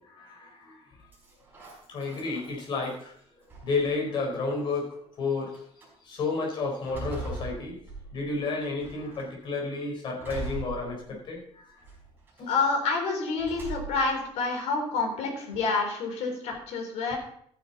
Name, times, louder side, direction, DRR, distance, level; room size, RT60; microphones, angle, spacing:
voice 1, 0.0-0.8 1.9-3.1 3.6-5.5 6.0-7.8 8.1-11.7 12.4-12.5, left 3 dB, 45° left, 0 dB, 4.1 m, -31 dB
sound 1, 1.1-3.0 3.5-4.2 5.0-5.1 5.5-5.9 6.4-8.4 8.8-9.3 10.2-11.4 11.8-12.4 13.4-14.2, right 2 dB, 15° right, 5.3 m, -40 dB
voice 2, 12.5-17.2, left 4 dB, 75° left, 2 dB, 4.0 m, -28 dB
14.0 x 10.0 x 4.0 m, 0.65 s
cardioid pair, 170°, 12 cm